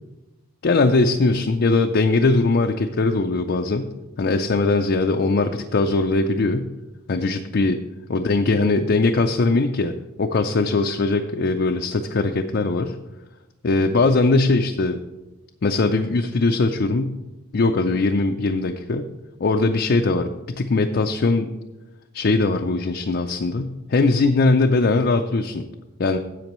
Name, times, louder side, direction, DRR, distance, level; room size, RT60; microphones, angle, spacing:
voice 1, 0.6-3.9 4.2-6.6 7.1-7.8 8.1-9.9 10.2-12.9 13.6-15.0 15.6-17.2 17.5-19.1 19.4-20.3 20.6-21.5 22.1-25.7 26.0-26.2, left 3 dB, 50° left, 4 dB, 0.5 m, -20 dB
15.5 x 7.6 x 3.1 m, 1.1 s
head